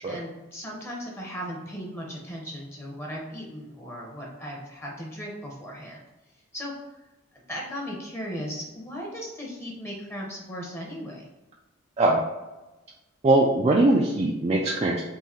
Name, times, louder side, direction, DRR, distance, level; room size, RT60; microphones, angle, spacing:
voice 1, 0.1-6.0 6.5-6.7 7.3-11.2, equal, 10° left, -2 dB, 0.7 m, -37 dB
voice 2, 13.2-15.0, right 2 dB, 30° right, 0 dB, 0.3 m, -21 dB
3.7 x 2.6 x 4.3 m, 1.1 s
head